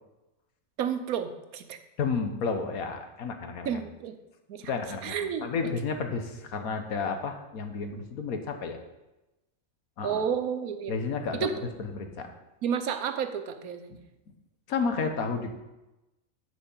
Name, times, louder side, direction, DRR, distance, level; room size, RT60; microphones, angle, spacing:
voice 1, 0.8-1.8 3.6-4.2 4.5-4.6 5.0-5.5 10.0-10.9 11.4-11.5 12.6-14.0, right 7 dB, 85° right, 9 dB, 1.3 m, -31 dB
voice 2, 2.0-3.8 4.6-8.8 10.0-10.2 10.9-12.3 14.7-15.5, left 5 dB, 85° left, 6 dB, 1.5 m, -31 dB
10.5 x 4.9 x 7.2 m, 1.0 s
omnidirectional pair, 1.5 m